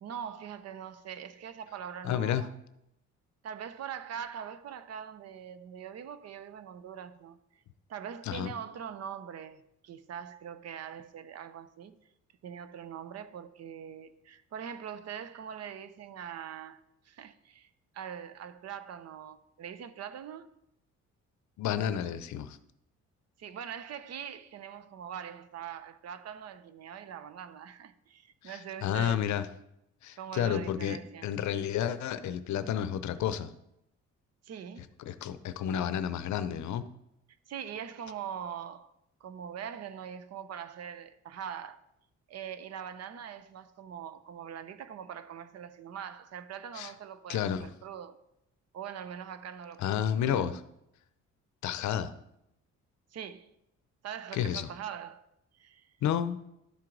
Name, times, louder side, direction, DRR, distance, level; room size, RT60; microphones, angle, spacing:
voice 1, 0.0-2.5 3.4-7.4 7.9-12.0 12.4-17.7 17.9-20.5 23.4-29.3 30.2-31.3 34.4-34.9 37.5-38.9 39.2-41.8 42.3-48.2 48.7-50.6 53.1-53.5 54.0-55.2 55.5-55.9, right 8 dB, 55° right, 0.6 m, -42 dB
voice 2, 2.0-2.5 8.3-8.5 21.6-22.6 28.4-29.4 30.0-31.0 31.2-33.5 35.0-36.9 46.8-46.9 47.3-47.7 49.8-50.5 51.6-52.1 54.3-54.7 56.0-56.4, left 9 dB, 70° left, 0.6 m, -31 dB
11.5 x 4.5 x 3.8 m
cardioid pair, 90°, 30 cm